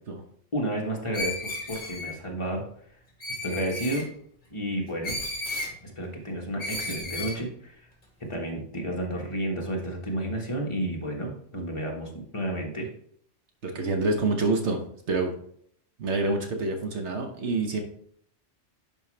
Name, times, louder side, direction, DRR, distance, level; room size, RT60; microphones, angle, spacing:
voice 1, 0.5-2.6 3.4-4.1 4.5-5.2 5.8-7.8 8.2-12.9, right 1 dB, 25° left, -1 dB, 1.5 m, -31 dB
Screech, 1.1-2.1 3.2-4.0 5.0-5.7 6.6-7.4, left 2 dB, 40° left, 2.0 m, -33 dB
voice 2, 13.6-14.8 15.1-15.3 16.0-17.8, right 3 dB, 70° right, 4 dB, 1.3 m, -26 dB
10.5 x 4.6 x 3.3 m, 0.65 s
omnidirectional pair, 1.2 m